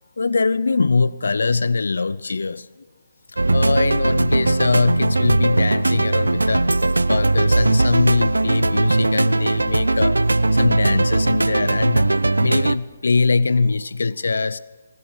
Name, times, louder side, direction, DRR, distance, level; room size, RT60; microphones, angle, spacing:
voice 1, 0.2-2.7 3.5-6.7 7.1-14.6, left 4 dB, 70° left, 0.5 m, -22 dB
sound 1, 3.4-12.8, right 2 dB, 85° right, 0.5 m, -19 dB
19.5 x 11.0 x 6.3 m
figure-of-eight pair, 145°, 0 cm